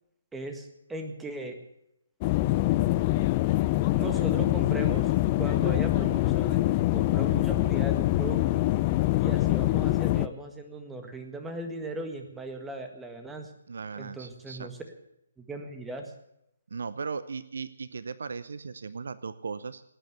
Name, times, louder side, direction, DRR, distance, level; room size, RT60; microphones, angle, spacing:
voice 1, 0.3-1.6 3.9-5.1 5.4-6.7 6.9-8.4 9.2-13.5 14.0-14.8 15.4-16.1, right 2 dB, 5° right, 5 dB, 1.7 m, -37 dB
sound 1, 2.2-10.3, left 16 dB, 25° left, 0.5 m, -24 dB
voice 2, 13.7-14.7 16.7-19.8, right 5 dB, 60° right, 16 dB, 0.7 m, -37 dB
18.5 x 9.2 x 8.0 m, 0.81 s
figure-of-eight pair, 140°, 0 cm